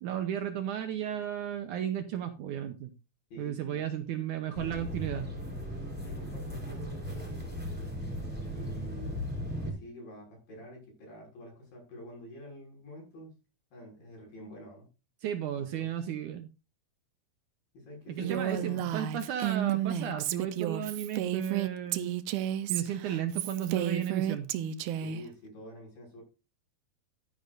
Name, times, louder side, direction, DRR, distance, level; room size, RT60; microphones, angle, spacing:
voice 1, 0.0-2.9 3.4-5.3 15.2-16.5 18.1-22.2 22.7-24.5, right 10 dB, 70° right, 8 dB, 2.0 m, -34 dB
voice 2, 3.3-3.9 6.0-7.8 8.5-9.3 9.6-13.3 13.7-14.9 15.5-15.9 17.7-19.1 25.0-26.2, left 1 dB, 70° left, -1 dB, 8.0 m, -47 dB
sound 1, 4.5-9.7, equal, 5° right, 3.5 m, -37 dB
Female speech woman speaking, 18.2-25.2, right 11 dB, 85° right, 2.7 m, -32 dB
12.0 x 10.0 x 2.6 m, 0.29 s
omnidirectional pair, 4.2 m